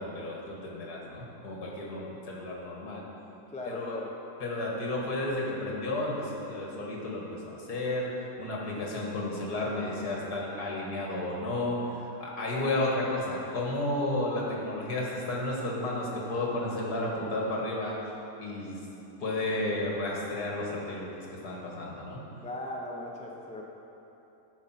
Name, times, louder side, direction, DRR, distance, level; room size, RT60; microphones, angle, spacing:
voice 1, 0.0-3.0 3.6-4.0 4.4-8.1 8.4-17.9 18.4-18.9 19.2-21.1 21.4-22.3, left 2 dB, 70° left, -3 dB, 2.1 m, -32 dB
voice 2, 3.5-4.2 22.4-23.6, left 1 dB, 10° left, -1 dB, 0.4 m, -38 dB
12.5 x 4.8 x 5.8 m, 3.0 s
omnidirectional pair, 1.8 m